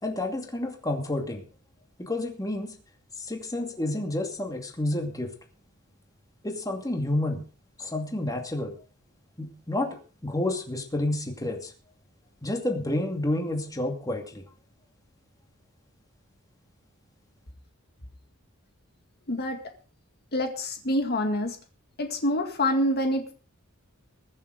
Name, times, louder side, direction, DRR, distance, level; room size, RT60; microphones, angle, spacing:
voice 1, 0.0-1.5 2.0-2.7 3.2-5.3 6.4-7.4 7.8-8.8 9.4-9.9 10.2-11.7 12.4-14.4, left 1 dB, 15° left, 3 dB, 2.5 m, -29 dB
voice 2, 19.3-19.6 20.3-21.6 22.0-23.3, left 1 dB, 50° left, 5 dB, 2.1 m, -26 dB
22.0 x 7.4 x 5.2 m, 0.38 s
head